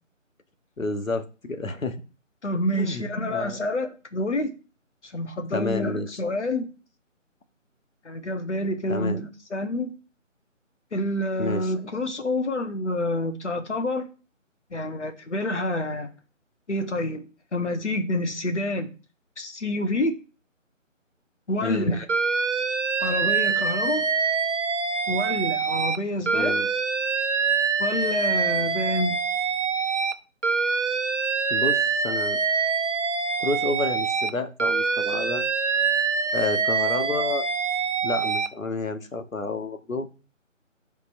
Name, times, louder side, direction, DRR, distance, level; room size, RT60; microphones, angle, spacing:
voice 1, 0.8-2.0 2.7-3.6 5.5-6.2 8.9-9.2 11.4-11.7 21.6-22.0 26.3-26.7 31.5-32.4 33.4-35.4 36.3-37.5 38.0-40.1, left 3 dB, 90° left, 1.1 m, -30 dB
voice 2, 2.4-4.5 5.0-6.7 8.0-9.9 10.9-14.1 14.7-16.1 16.7-17.2 17.5-18.9 19.4-20.2 21.5-22.0 23.0-24.0 25.1-26.5 27.8-29.1, left 1 dB, 60° left, 1.3 m, -28 dB
Alarm, 22.1-26.0 26.3-30.1 30.4-34.3 34.6-38.5, right 5 dB, 65° right, 0.9 m, -25 dB
8.2 x 4.5 x 2.6 m
figure-of-eight pair, 160°, 39 cm